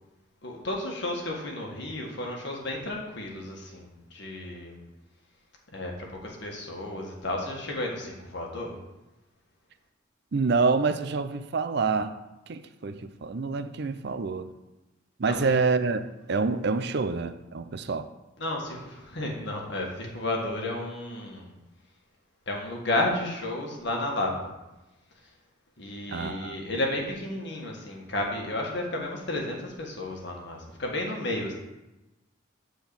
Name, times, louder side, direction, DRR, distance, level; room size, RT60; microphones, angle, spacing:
voice 1, 0.4-4.8 5.7-8.8 15.3-15.5 18.4-21.5 22.5-24.5 25.8-31.5, left 1 dB, 55° left, 0 dB, 1.7 m, -32 dB
voice 2, 10.3-12.2 12.5-14.5 15.2-18.1 26.1-26.6, right 4 dB, 55° right, 11 dB, 0.5 m, -27 dB
7.8 x 4.5 x 7.0 m, 1.0 s
head